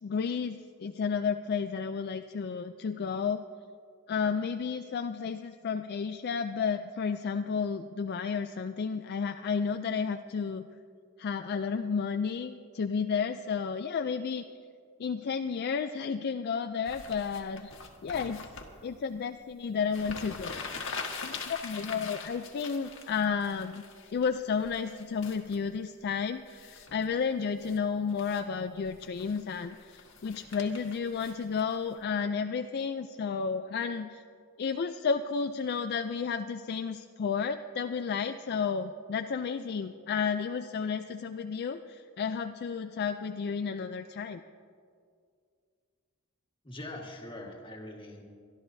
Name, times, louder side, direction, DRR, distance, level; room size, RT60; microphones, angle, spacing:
voice 1, 0.0-3.4 4.1-10.7 11.2-14.4 15.0-17.7 18.0-18.5 18.8-20.8 21.2-23.8 24.1-34.2 34.6-44.4, left 6 dB, 50° left, 8 dB, 0.4 m, -32 dB
sound 1, 16.8-18.7 19.6-19.7 19.9-24.3 24.6-25.6 26.5-27.0 27.4-27.8 28.1-28.4 28.8-32.0, left 4 dB, 65° left, 1.4 m, -43 dB
voice 2, 46.6-48.2, left 1 dB, 25° left, 0 dB, 1.6 m, -42 dB
23.0 x 13.0 x 2.7 m, 2.2 s
head